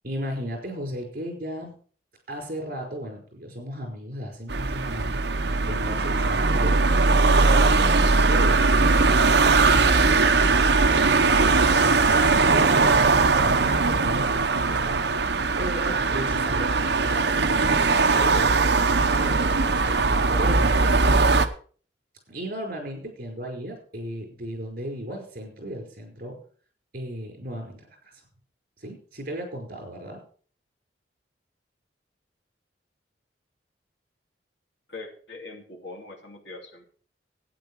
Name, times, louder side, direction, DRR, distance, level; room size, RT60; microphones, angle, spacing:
voice 1, 0.0-1.8 2.3-6.8 7.3-10.6 10.9-15.0 15.6-19.4 19.8-21.3 22.3-26.3 26.9-28.2 28.8-30.2, equal, 50° right, 3 dB, 5.0 m, -36 dB
sound 1, 4.5-21.5, right 3 dB, 70° right, 0.9 m, -20 dB
voice 2, 34.9-36.9, left 3 dB, 80° left, 1 dB, 2.8 m, -41 dB
12.0 x 9.4 x 4.8 m, 0.43 s
head